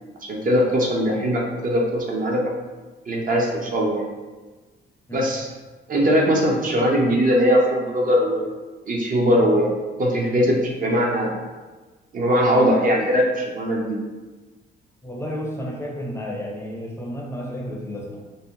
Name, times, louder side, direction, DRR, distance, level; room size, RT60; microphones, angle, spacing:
voice 1, 0.2-2.4 3.1-4.1 5.1-5.5 5.9-8.5 8.9-9.7 10.0-11.3 12.1-14.0, equal, 45° right, -1 dB, 0.5 m, -20 dB
voice 2, 15.0-18.2, equal, 15° left, -2 dB, 0.5 m, -31 dB
2.6 x 2.1 x 2.8 m, 1.3 s
cardioid pair, 90°, 20 cm